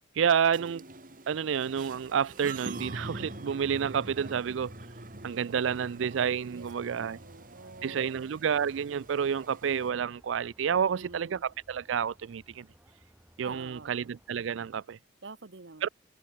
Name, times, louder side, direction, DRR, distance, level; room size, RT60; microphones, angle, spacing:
voice 1, 0.2-0.8 1.3-4.7 5.2-7.2 7.8-12.7 13.4-15.0 15.8-15.9, right 7 dB, 85° right, 0.4 m, -29 dB
sound 1, 0.5-9.9, right 2 dB, 45° right, 2.9 m, -45 dB
sound 2, 1.9-14.5, equal, 10° right, 3.1 m, -63 dB
voice 2, 6.5-8.2 10.8-11.4 13.4-14.1 15.2-15.9, right 3 dB, 70° right, 1.1 m, -47 dB
head